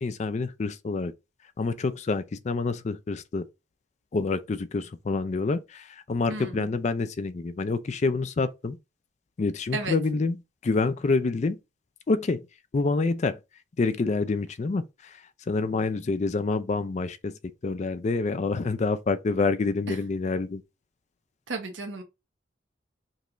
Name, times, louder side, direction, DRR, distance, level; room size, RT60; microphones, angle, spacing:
voice 1, 0.0-1.1 1.6-3.5 4.1-8.8 9.4-10.4 10.6-11.6 12.1-12.5 12.7-13.4 13.8-15.2 15.5-20.6, left 3 dB, 40° left, 0.4 m, -27 dB
voice 2, 6.3-6.7 9.7-10.0 19.9-20.0 21.5-22.0, right 3 dB, 90° right, 1.0 m, -33 dB
5.2 x 2.5 x 3.0 m
head